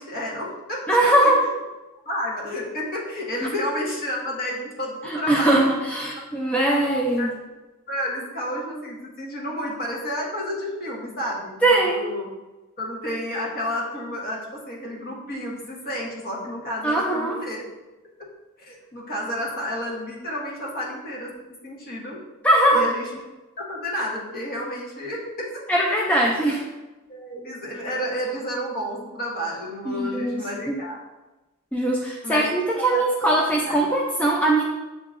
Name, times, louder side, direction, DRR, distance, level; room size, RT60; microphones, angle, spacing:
voice 1, 0.0-1.5 2.0-5.6 6.1-6.2 7.2-7.3 7.9-12.3 12.8-17.6 18.6-21.3 21.6-22.2 22.7-23.1 23.6-25.5 26.5-26.6 27.1-31.0 32.2-32.5 32.8-33.3 33.6-33.8, left 1 dB, 45° left, -3 dB, 1.1 m, -31 dB
voice 2, 0.9-1.4 5.1-7.3 11.6-12.0 16.8-17.4 22.4-22.8 25.7-26.6 29.9-30.8 31.7-34.6, right 1 dB, 5° left, -2 dB, 0.3 m, -21 dB
7.4 x 2.8 x 2.4 m, 1.1 s
head